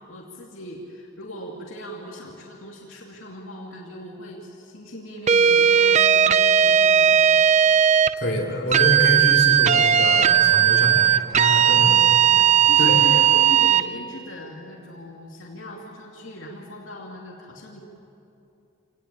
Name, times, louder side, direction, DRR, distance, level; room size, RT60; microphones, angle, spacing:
voice 1, 0.1-7.4 11.7-17.8, left 1 dB, 75° left, -2 dB, 2.6 m, -39 dB
sound 1, 5.3-8.1 8.7-13.9, right 9 dB, 35° right, 0.5 m, -17 dB
voice 2, 8.2-11.9 12.3-12.4 12.8-13.0, equal, 50° left, -1 dB, 3.4 m, -26 dB
27.0 x 18.5 x 8.8 m, 2.8 s
head